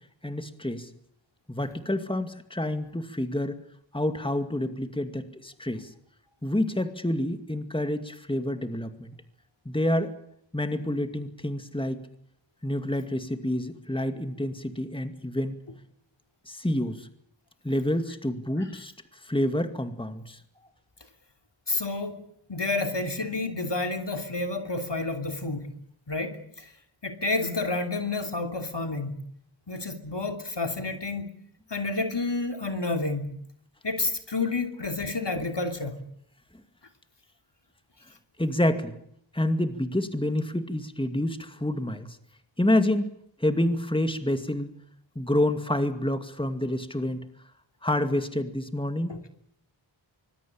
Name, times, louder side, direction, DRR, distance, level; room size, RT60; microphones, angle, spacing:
voice 1, 0.2-0.9 1.5-3.6 3.9-5.9 6.4-9.1 9.7-10.1 10.5-12.1 12.6-15.6 16.5-17.1 17.6-18.9 19.2-20.4 38.4-38.9 39.3-42.2 42.6-43.1 43.4-44.7 45.2-47.2 47.8-49.1, left 1 dB, 10° left, 2.2 m, -28 dB
voice 2, 21.7-25.7 26.1-26.7 27.0-29.2 29.7-31.3 31.7-33.3 33.8-36.0 49.1-49.2, left 3 dB, 60° left, 3.0 m, -30 dB
24.5 x 20.5 x 8.8 m
wide cardioid pair, 40°, 47 cm